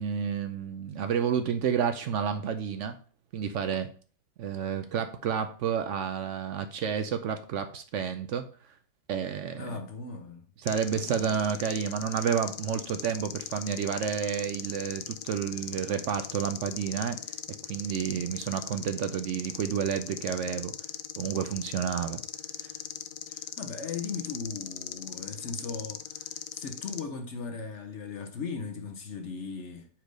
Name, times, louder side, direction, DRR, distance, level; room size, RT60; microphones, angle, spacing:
voice 1, 0.0-3.0 3.3-3.9 4.4-8.7 9.1-9.8 10.6-17.2 17.6-20.7 21.2-22.2 22.6-22.7, right 7 dB, 65° right, 0.7 m, -30 dB
voice 2, 9.6-10.5 10.9-11.3 23.3-29.9, left 5 dB, 55° left, 0.9 m, -38 dB
sound 1, 10.7-27.0, left 11 dB, 80° left, 1.1 m, -39 dB
4.8 x 4.5 x 5.1 m
omnidirectional pair, 1.7 m